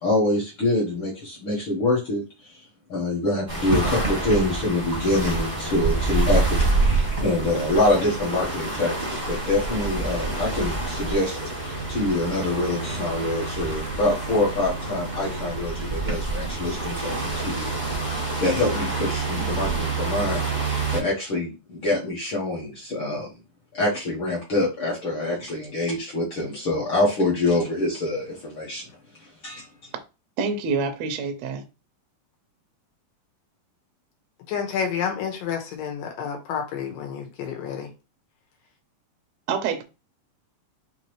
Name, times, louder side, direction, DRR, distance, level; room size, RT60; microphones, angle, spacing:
voice 1, 0.0-2.6 2.9-17.7 18.4-23.3 23.7-28.8 29.4-29.7, left 2 dB, 60° left, 1.4 m, -25 dB
sound 1, 3.5-21.0, right 3 dB, 35° right, 0.7 m, -27 dB
voice 2, 30.4-31.6 39.5-39.8, right 5 dB, 75° right, 1.6 m, -26 dB
voice 3, 34.5-37.9, left 7 dB, 80° left, 2.8 m, -29 dB
5.8 x 2.9 x 3.1 m
omnidirectional pair, 3.9 m